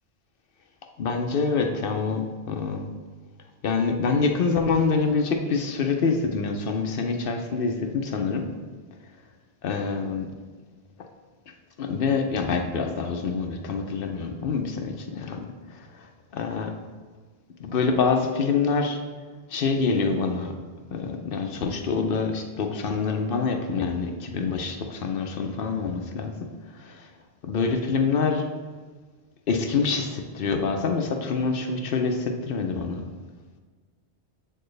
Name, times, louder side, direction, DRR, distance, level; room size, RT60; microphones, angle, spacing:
voice 1, 1.0-2.9 3.6-8.5 9.6-10.3 11.8-15.5 16.0-16.1 16.3-16.7 17.7-19.0 19.5-20.5 20.9-26.5 26.8-27.1 27.4-28.5 29.5-33.0, left 4 dB, 60° left, 4 dB, 0.8 m, -26 dB
7.5 x 4.4 x 3.2 m, 1.4 s
omnidirectional pair, 1.1 m